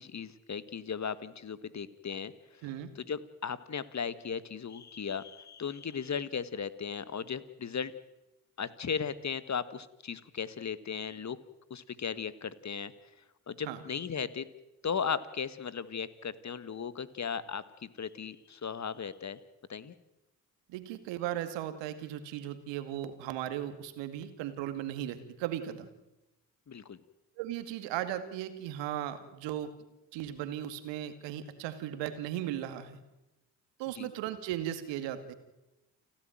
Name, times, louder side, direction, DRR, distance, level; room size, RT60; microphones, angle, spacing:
voice 1, 0.0-2.3 2.9-7.9 8.6-11.4 11.7-12.9 13.5-14.4 14.8-19.4 19.7-19.9 26.7-27.0 33.9-34.1, left 6 dB, 40° left, 15 dB, 1.7 m, -36 dB
voice 2, 20.7-25.9 27.4-29.7 30.1-33.0 33.8-35.3, right 12 dB, 75° right, 10 dB, 2.2 m, -37 dB
29.5 x 12.0 x 9.2 m, 0.98 s
hypercardioid pair, 45°, 44 cm